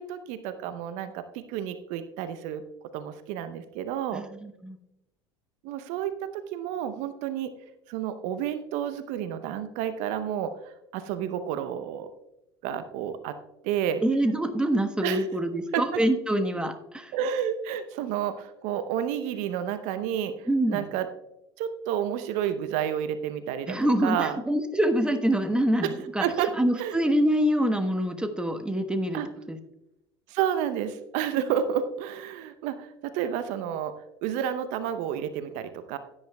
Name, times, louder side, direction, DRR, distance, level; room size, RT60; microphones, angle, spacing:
voice 1, 0.0-2.6 2.9-4.2 5.6-7.5 7.9-10.5 10.9-12.1 12.6-13.4 13.6-14.0 15.0-15.3 15.7-16.0 17.1-21.1 21.6-24.4 25.8-27.0 29.1-29.3 30.3-33.9 34.2-36.0, right 9 dB, 60° right, 11 dB, 0.8 m, -30 dB
voice 2, 4.1-4.8 14.0-17.1 20.5-20.8 23.7-26.2 26.6-29.2 29.5-29.6, right 1 dB, 5° right, 6 dB, 1.2 m, -25 dB
15.5 x 9.7 x 2.3 m, 0.89 s
hypercardioid pair, 70°, 14 cm